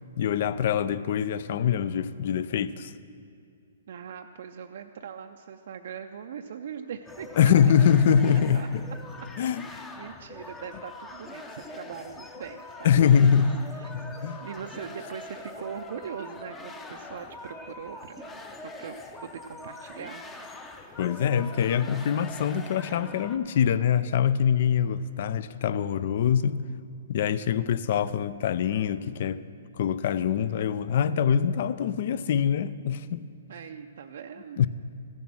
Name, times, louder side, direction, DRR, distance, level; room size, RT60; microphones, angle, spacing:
voice 1, 0.2-2.9 7.4-8.8 9.4-9.6 12.8-13.7 13.9-14.4 21.0-26.6 27.1-29.4 29.8-33.3 34.6-34.7, left 8 dB, 55° left, 0.4 m, -24 dB
voice 2, 3.9-7.5 8.5-8.7 9.6-13.4 13.7-13.9 14.4-19.0 19.2-20.2 33.5-34.7, right 7 dB, 65° right, 0.4 m, -41 dB
sound 1, 7.1-23.4, left 2 dB, 15° left, 0.7 m, -43 dB
14.0 x 7.2 x 6.1 m
hypercardioid pair, 135°, 0 cm